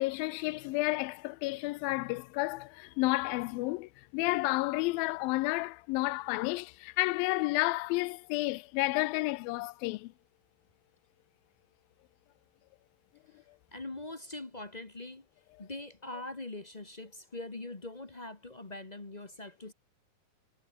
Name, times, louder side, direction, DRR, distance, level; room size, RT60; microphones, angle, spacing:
voice 1, 0.0-10.1, left 21 dB, 90° left, 2.4 m, -31 dB
voice 2, 13.7-15.2 15.6-19.7, left 2 dB, 30° left, 0.7 m, -42 dB
omnidirectional pair, 4.1 m